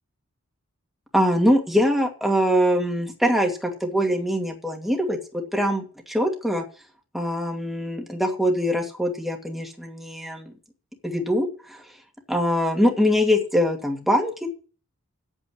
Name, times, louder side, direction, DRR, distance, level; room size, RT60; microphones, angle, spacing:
voice 1, 1.1-6.6 7.1-10.5 11.0-11.8 12.3-14.5, equal, ahead, 1 dB, 2.5 m, -23 dB
8.9 x 8.4 x 8.7 m, 0.39 s
head